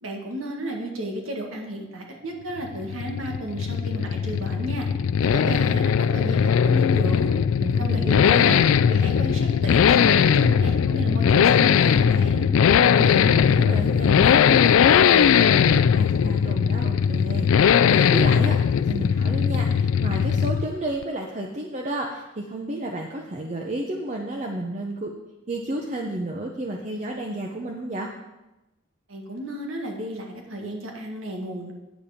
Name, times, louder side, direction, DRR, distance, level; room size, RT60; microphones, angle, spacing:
voice 1, 0.0-4.9 5.3-7.4 7.8-8.6 8.9-12.5 29.1-31.7, right 1 dB, 90° right, 1 dB, 1.7 m, -32 dB
Accelerating revving vroom, 2.6-20.8 21.0-21.1, left 7 dB, 90° left, 0.3 m, -19 dB
voice 2, 7.6-8.7 12.8-25.1 25.5-28.1, right 1 dB, 35° right, 0 dB, 0.7 m, -32 dB
8.9 x 7.2 x 5.0 m, 1.0 s
head